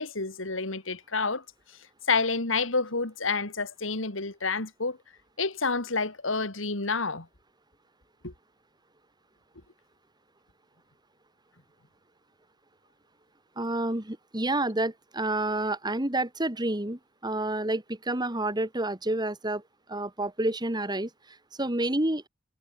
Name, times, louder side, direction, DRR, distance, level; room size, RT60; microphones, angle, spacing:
voice 1, 0.0-1.4 2.1-5.0 5.4-7.3 8.2-8.3, left 4 dB, 75° left, 3.0 m, -29 dB
voice 2, 13.6-19.6 19.9-22.3, right 2 dB, 20° right, 2.4 m, -29 dB
head